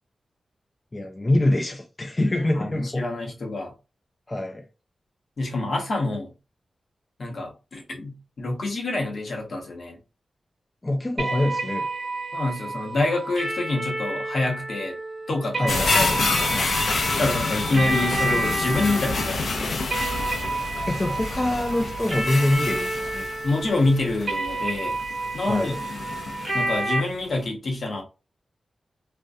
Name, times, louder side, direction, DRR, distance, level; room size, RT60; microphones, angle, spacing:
voice 1, 0.9-3.0 4.3-4.7 10.8-11.9 15.6-16.2 20.9-23.3 25.5-25.8, left 1 dB, 25° left, 0.4 m, -25 dB
voice 2, 2.6-3.7 5.4-6.3 7.2-10.0 12.3-15.0 15.3-15.8 17.0-19.8 23.4-25.0 25.3-25.7 26.5-28.0, left 2 dB, 65° left, 0.9 m, -27 dB
sound 1, 11.2-27.0, right 2 dB, 45° right, 1.0 m, -30 dB
sound 2, 15.7-26.9 27.3-27.4, left 3 dB, 90° left, 0.5 m, -28 dB
2.6 x 2.1 x 2.3 m
wide cardioid pair, 105°, 0 cm